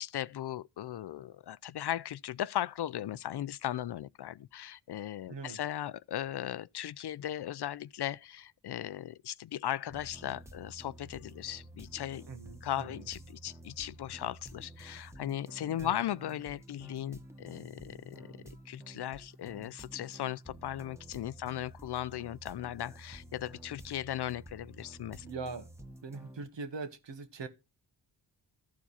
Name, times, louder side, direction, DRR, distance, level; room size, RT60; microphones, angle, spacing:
voice 1, 0.0-12.3 12.6-18.3 18.7-25.3, left 12 dB, 55° left, 0.5 m, -37 dB
voice 2, 5.3-5.6 12.3-13.1 15.8-16.0 21.5-21.6 25.2-25.7 26.0-27.5, right 4 dB, 60° right, 1.6 m, -42 dB
sound 1, 9.9-26.5, right 1 dB, 5° right, 1.5 m, -51 dB
13.5 x 4.7 x 4.2 m
supercardioid pair, 40°, 48 cm